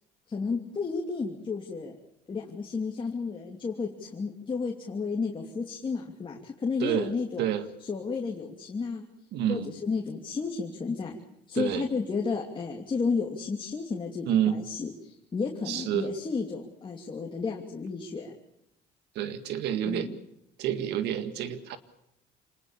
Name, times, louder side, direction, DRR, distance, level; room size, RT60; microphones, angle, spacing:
voice 1, 0.3-2.0 2.3-7.5 7.8-9.1 9.5-11.2 11.5-18.3 19.8-20.2, left 4 dB, 30° left, 0 dB, 2.9 m, -32 dB
voice 2, 6.8-7.1 7.4-7.7 9.3-9.7 11.5-11.9 14.2-14.6 15.7-16.1 19.2-20.1 20.6-21.8, right 10 dB, 80° right, 11 dB, 2.0 m, -28 dB
27.0 x 20.0 x 7.1 m, 0.80 s
cardioid pair, 110°, 17 cm